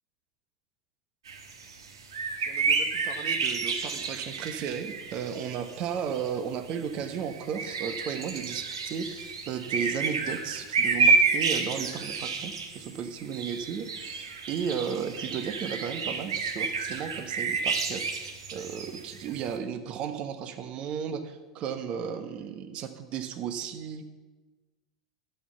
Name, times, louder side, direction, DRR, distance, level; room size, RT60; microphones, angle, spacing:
sound 1, 1.3-5.8 6.1-6.3 6.7-19.5, right 4 dB, 70° right, 1.4 m, -30 dB
voice 1, 2.5-24.1, right 7 dB, 40° right, 9 dB, 1.1 m, -35 dB
11.5 x 8.1 x 7.0 m, 1.2 s
figure-of-eight pair, 85°, 3 cm